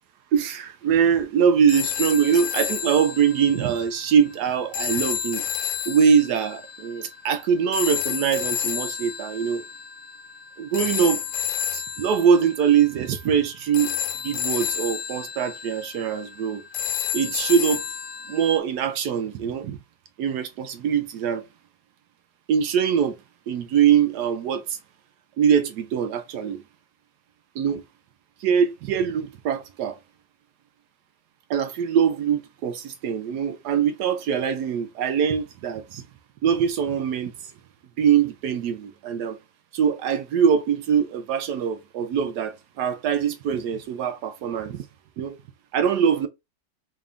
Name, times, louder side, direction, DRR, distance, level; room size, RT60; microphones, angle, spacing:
voice 1, 0.3-5.4 5.9-9.6 10.6-11.2 11.7-14.0 14.2-16.6 17.1-17.8 18.3-19.8 20.2-21.4 22.5-23.2 23.5-24.8 25.4-26.6 27.6-27.8 28.4-30.0 31.5-36.0 36.4-37.5 38.0-39.4 39.7-44.8 45.2-45.4 45.7-46.3, right 7 dB, 70° right, 1.0 m, -23 dB
sound 1, 1.7-18.6, left 9 dB, 85° left, 1.3 m, -31 dB
3.8 x 3.4 x 2.4 m
omnidirectional pair, 1.9 m